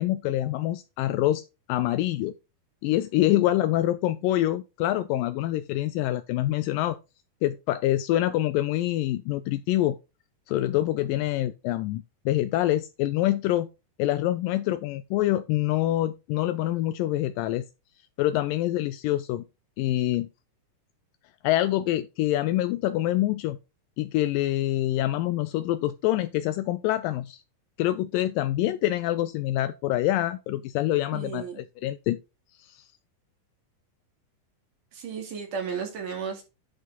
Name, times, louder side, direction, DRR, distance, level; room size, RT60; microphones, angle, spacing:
voice 1, 0.0-1.4 1.7-2.3 2.8-7.0 7.4-10.0 10.5-13.7 14.0-17.7 18.2-19.4 19.8-20.3 21.4-23.6 24.0-27.4 27.8-32.2 32.6-32.9, left 14 dB, 80° left, 2.1 m, -26 dB
voice 2, 31.1-31.6 34.9-36.4, right 6 dB, 65° right, 3.7 m, -34 dB
10.0 x 4.9 x 4.0 m
omnidirectional pair, 4.0 m